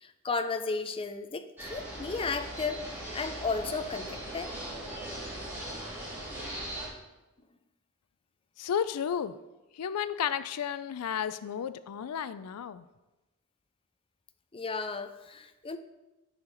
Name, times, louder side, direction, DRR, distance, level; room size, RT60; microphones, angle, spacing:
voice 1, 0.0-4.5 14.5-15.8, left 4 dB, 25° left, 9 dB, 0.5 m, -34 dB
sound 1, 1.6-6.9, right 1 dB, 10° right, 3.4 m, -39 dB
voice 2, 8.6-9.4 9.7-12.8, left 8 dB, 80° left, 14 dB, 0.4 m, -32 dB
11.0 x 6.5 x 3.9 m, 1.0 s
head